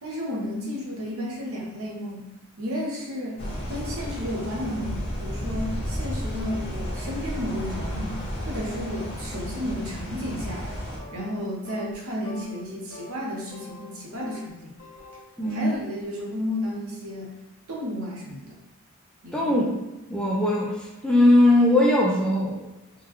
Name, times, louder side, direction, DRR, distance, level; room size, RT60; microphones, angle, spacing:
voice 1, 0.0-2.3 2.6-3.4 3.7-8.1 8.5-10.7 11.1-14.7 15.5-17.3 17.7-18.6 19.2-19.6, left 1 dB, 80° right, -3 dB, 0.9 m, -32 dB
sound 1, 3.4-11.0, equal, 30° left, 0.8 m, -32 dB
sound 2, 11.0-11.4 11.7-11.9 12.2-12.6 12.9-13.1 13.5-14.5 14.8-15.8, left 2 dB, 60° left, 0.7 m, -44 dB
voice 2, 15.4-15.7 19.3-19.7 20.1-22.6, left 1 dB, 5° left, -4 dB, 0.4 m, -20 dB
3.7 x 2.2 x 3.0 m, 1.0 s
head